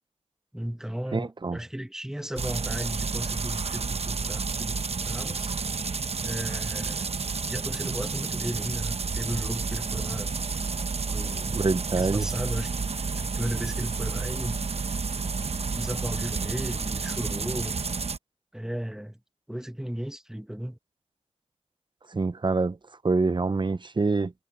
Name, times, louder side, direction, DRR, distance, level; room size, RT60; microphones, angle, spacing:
voice 1, 0.5-5.5 6.2-7.1 7.5-10.3 11.1-11.6 12.0-12.7 13.2-14.6 15.7-17.8 18.5-19.2 19.5-20.8, equal, 5° right, 1.2 m, -35 dB
voice 2, 1.1-1.6 11.5-12.3 22.1-22.8 23.0-24.3, right 3 dB, 40° right, 0.8 m, -25 dB
sound 1, 2.4-18.2, right 4 dB, 55° right, 1.0 m, -30 dB
cardioid pair, 50°, 12 cm